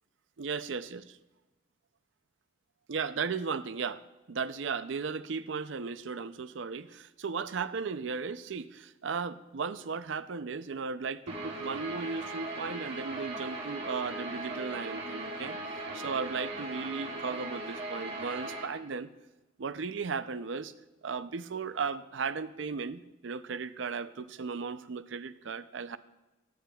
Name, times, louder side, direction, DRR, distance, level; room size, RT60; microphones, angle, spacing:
voice 1, 0.4-1.0 2.9-4.0 4.3-15.6 15.9-19.1 19.6-20.7 21.0-26.0, right 5 dB, 70° right, 13 dB, 0.5 m, -36 dB
Guitar, 11.3-18.6, right 2 dB, 35° right, 2.3 m, -38 dB
24.5 x 9.4 x 2.3 m, 1.1 s
head